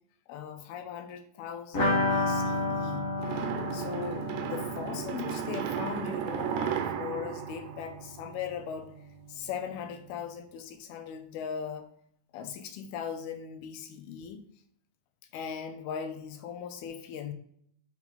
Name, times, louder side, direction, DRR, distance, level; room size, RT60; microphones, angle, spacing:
voice 1, 0.3-3.1 3.7-8.9 9.3-11.9 12.3-14.5 15.3-17.3, left 7 dB, 90° left, 8 dB, 2.7 m, -39 dB
sound 1, 1.7-7.3 7.6-7.7 8.0-8.1, left 2 dB, 45° left, 1.0 m, -32 dB
sound 2, 3.2-8.5, right 9 dB, 75° right, 2.2 m, -35 dB
6.0 x 4.8 x 5.6 m, 0.69 s
omnidirectional pair, 4.3 m